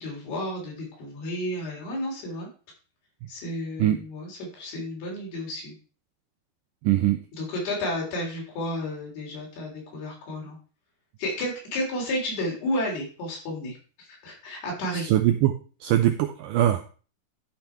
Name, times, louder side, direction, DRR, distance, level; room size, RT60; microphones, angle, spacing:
voice 1, 0.0-2.5 3.3-5.7 7.4-10.6 11.2-13.8 14.2-15.1, left 1 dB, 80° left, -2 dB, 5.4 m, -32 dB
voice 2, 6.8-7.2 15.0-15.5 15.8-16.9, right 13 dB, 80° right, 7 dB, 1.9 m, -22 dB
12.0 x 5.4 x 4.4 m, 0.37 s
omnidirectional pair, 4.5 m